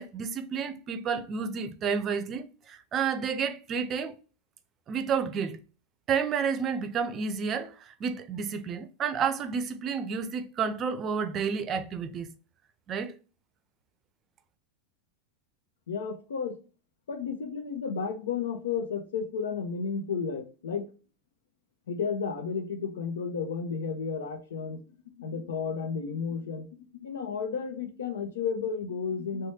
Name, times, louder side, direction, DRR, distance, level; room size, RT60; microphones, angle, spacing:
voice 1, 0.0-4.1 4.9-5.6 6.1-12.3 12.9-13.1, right 6 dB, 35° right, 0.5 m, -30 dB
voice 2, 15.9-16.6 17.1-20.9 21.9-24.8 25.2-29.5, left 6 dB, 85° left, 0.7 m, -32 dB
3.2 x 2.2 x 4.1 m
hypercardioid pair, 115°, 0 cm